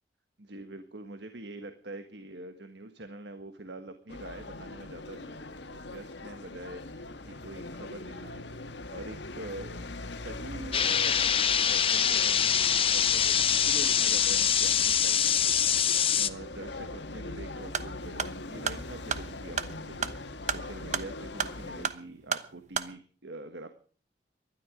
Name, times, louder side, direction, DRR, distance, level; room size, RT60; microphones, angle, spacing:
voice 1, 0.4-5.4 5.7-8.6 8.9-9.8 10.1-23.7, right 2 dB, 75° right, 8 dB, 1.5 m, -45 dB
sound 1, 4.1-21.9, left 2 dB, 80° left, 1.5 m, -41 dB
sound 2, 10.7-16.3, left 8 dB, 30° left, 0.7 m, -24 dB
sound 3, 17.6-22.9, right 6 dB, 40° right, 1.0 m, -35 dB
19.0 x 12.5 x 5.2 m, 0.44 s
head